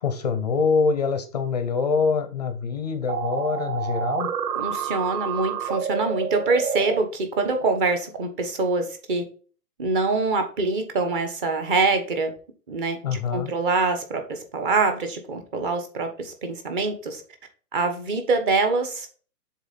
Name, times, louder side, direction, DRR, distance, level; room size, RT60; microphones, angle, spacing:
voice 1, 0.0-4.3 13.0-13.5, left 5 dB, 30° left, 9 dB, 0.5 m, -24 dB
sound 1, 3.1-7.0, right 7 dB, 70° right, 1.0 m, -28 dB
voice 2, 4.6-9.2 9.8-12.3 12.7-13.0 13.3-17.2 17.7-19.1, right 3 dB, 35° right, 6 dB, 1.3 m, -24 dB
7.2 x 3.8 x 4.1 m, 0.40 s
hypercardioid pair, 160°, 47 cm